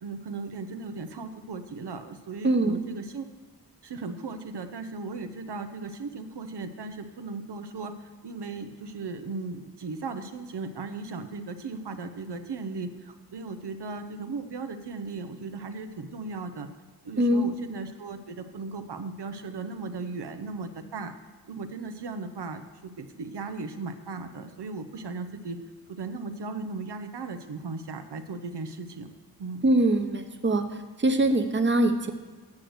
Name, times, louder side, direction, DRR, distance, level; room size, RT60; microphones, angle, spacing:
voice 1, 0.0-3.2 3.8-16.7 17.0-21.1 21.5-25.6 25.9-29.1 29.4-29.6, right 3 dB, 85° right, 7 dB, 0.7 m, -37 dB
voice 2, 2.4-2.8 17.2-17.5 29.6-30.6 31.0-32.1, right 1 dB, 30° right, 6 dB, 0.8 m, -23 dB
8.5 x 6.4 x 7.7 m, 1.4 s
wide cardioid pair, 85°, 39 cm